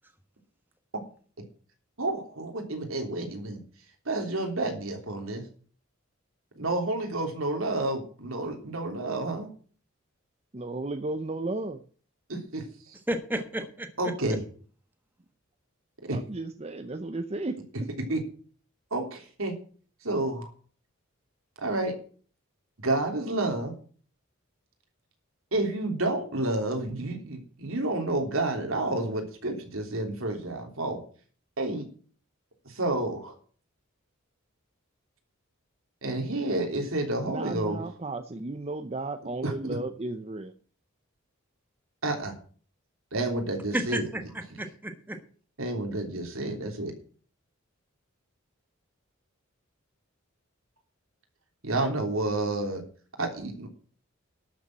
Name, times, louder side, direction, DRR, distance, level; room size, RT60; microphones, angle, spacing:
voice 1, 2.0-3.6 4.0-5.4 6.6-9.5 12.3-12.9 14.0-14.4 16.1-16.2 18.1-18.2 18.9-19.6 20.0-20.5 21.6-22.0 22.8-23.7 25.5-31.0 31.6-31.9 32.6-33.3 36.0-37.8 39.4-39.8 42.0-42.3 43.1-44.0 45.6-46.9 51.6-52.8 53.2-53.7, right 2 dB, 75° right, 3 dB, 3.3 m, -30 dB
voice 2, 10.5-11.8 16.1-17.6 37.3-40.5, right 2 dB, 30° right, 9 dB, 0.7 m, -34 dB
voice 3, 13.1-14.1 43.7-44.2 44.6-45.2, right 1 dB, 10° right, 7 dB, 1.3 m, -32 dB
12.0 x 7.1 x 7.5 m, 0.43 s
head